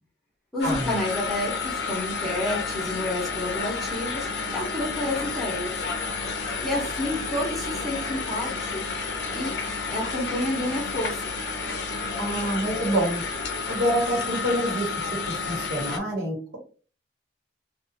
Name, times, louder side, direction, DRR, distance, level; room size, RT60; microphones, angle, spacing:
voice 1, 0.5-5.8 6.6-9.5 9.9-11.3, left 1 dB, ahead, -6 dB, 0.8 m, -30 dB
sound 1, 0.6-16.0, left 4 dB, 65° left, 0.5 m, -31 dB
voice 2, 12.2-13.2 13.7-16.6, equal, 65° right, -1 dB, 1.2 m, -27 dB
2.5 x 2.3 x 2.7 m, 0.38 s
head